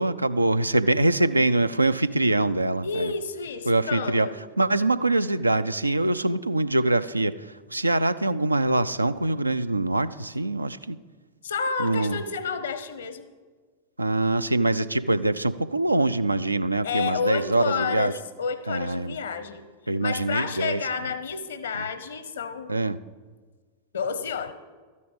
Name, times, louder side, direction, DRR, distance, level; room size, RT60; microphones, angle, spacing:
voice 1, 0.0-3.1 3.7-11.0 11.8-12.2 14.0-18.1 18.7-19.2 19.9-21.0 22.7-23.0, right 2 dB, 85° right, 13 dB, 0.3 m, -24 dB
voice 2, 2.8-4.4 11.4-13.3 16.8-19.6 20.0-22.7 23.9-24.5, left 5 dB, 65° left, 13 dB, 0.8 m, -30 dB
13.0 x 9.4 x 5.2 m, 1.5 s
figure-of-eight pair, 90°, 0 cm